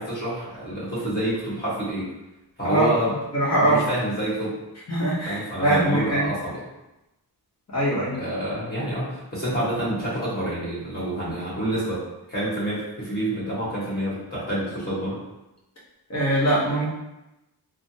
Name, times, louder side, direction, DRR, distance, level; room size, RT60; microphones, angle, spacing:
voice 1, 0.0-2.1 2.6-3.1 3.6-4.6 5.2-6.6 8.2-12.0 12.3-15.2, right 1 dB, 25° left, -8 dB, 1.4 m, -27 dB
voice 2, 3.3-3.8 4.9-6.3 7.7-8.2 16.1-16.9, right 1 dB, 40° left, -6 dB, 1.0 m, -22 dB
3.3 x 2.2 x 2.7 m, 0.96 s
wide cardioid pair, 140°, 40 cm